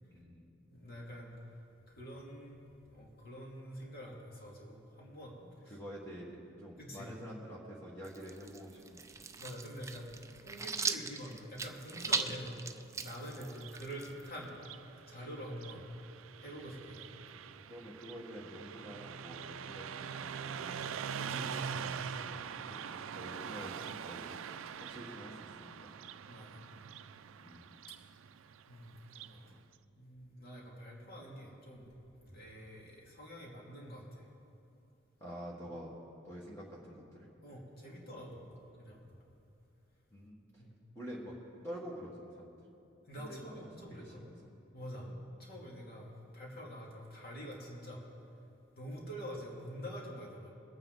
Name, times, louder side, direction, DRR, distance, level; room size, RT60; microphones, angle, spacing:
voice 1, 0.1-0.5 5.4-9.0 17.7-21.2 21.8-24.4 24.8-25.7 27.4-27.6 29.5-29.6 35.2-36.0 36.2-37.3 40.1-40.4 40.9-41.3 41.6-42.5 43.1-43.5 43.9-44.3 45.1-45.2, equal, 15° left, -5 dB, 1.5 m, -48 dB
voice 2, 0.7-1.3 1.9-2.6 2.9-5.8 6.8-7.1 9.4-10.1 10.4-12.6 13.0-14.5 15.1-15.8 16.4-17.1 21.2-22.2 26.3-26.6 28.7-29.4 29.9-31.9 32.2-34.3 37.4-38.4 38.7-39.0 40.6-40.8 43.1-44.3 44.7-45.1 45.4-48.0 48.8-50.5, equal, 50° left, -3 dB, 2.6 m, -46 dB
sound 1, 8.0-14.5, right 5 dB, 15° right, 0.3 m, -39 dB
Car passing by, 13.4-29.4, right 7 dB, 85° right, 0.4 m, -44 dB
22.0 x 8.8 x 4.0 m, 2.7 s
head